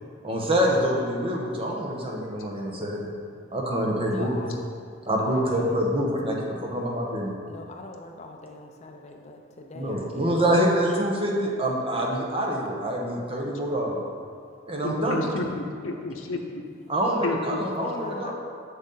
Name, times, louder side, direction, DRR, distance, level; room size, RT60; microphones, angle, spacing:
voice 1, 0.2-3.1 3.5-4.5 5.1-7.4 9.7-14.0 14.7-15.3 16.9-18.3, equal, 30° right, -1 dB, 1.1 m, -26 dB
voice 2, 4.0-4.6 5.2-5.8 7.5-10.7 15.0-15.1 17.7-18.3, left 2 dB, 35° left, 3 dB, 0.6 m, -41 dB
voice 3, 14.8-16.6 17.2-17.6, left 2 dB, 80° left, 3 dB, 0.8 m, -30 dB
7.3 x 6.6 x 4.0 m, 2.2 s
head